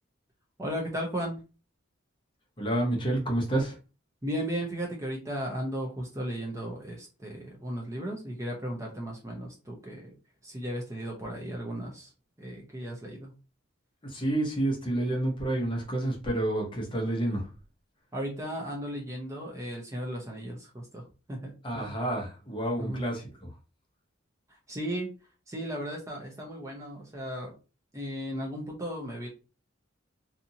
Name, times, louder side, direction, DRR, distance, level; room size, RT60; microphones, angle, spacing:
voice 1, 0.6-1.4 4.2-10.1 10.4-12.1 12.4-13.3 18.1-21.0 21.3-21.5 22.8-23.0 24.5-25.1 25.5-27.5 27.9-29.3, equal, 15° right, 0.5 m, -35 dB
voice 2, 2.6-3.8 14.0-17.5 21.6-23.6, right 1 dB, 25° left, 0.7 m, -29 dB
2.7 x 2.6 x 2.6 m
head